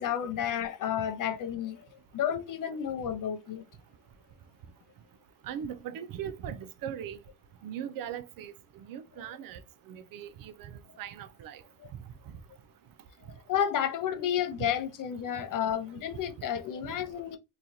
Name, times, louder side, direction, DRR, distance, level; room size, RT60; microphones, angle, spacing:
voice 1, 0.0-1.9 2.1-3.6 13.5-17.4, left 9 dB, 50° left, 0.6 m, -31 dB
voice 2, 5.4-7.2 7.6-8.5 8.9-9.6 9.9-11.6, right 9 dB, 55° right, 0.5 m, -39 dB
2.9 x 2.3 x 2.6 m
supercardioid pair, 75°, 41 cm